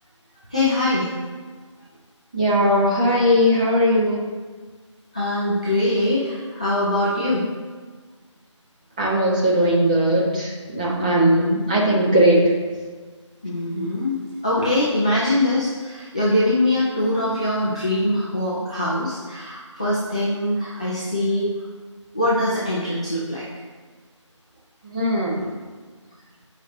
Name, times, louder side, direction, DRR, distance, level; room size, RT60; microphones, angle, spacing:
voice 1, 0.5-1.1 5.1-7.4 11.0-11.6 13.4-14.2 14.4-21.5 22.1-23.4, left 1 dB, 15° left, -8 dB, 0.4 m, -23 dB
voice 2, 2.3-4.2 9.0-12.5 24.9-25.4, equal, 15° right, -5 dB, 0.9 m, -19 dB
14.5 x 5.1 x 2.7 m, 1.4 s
figure-of-eight pair, 160°, 16 cm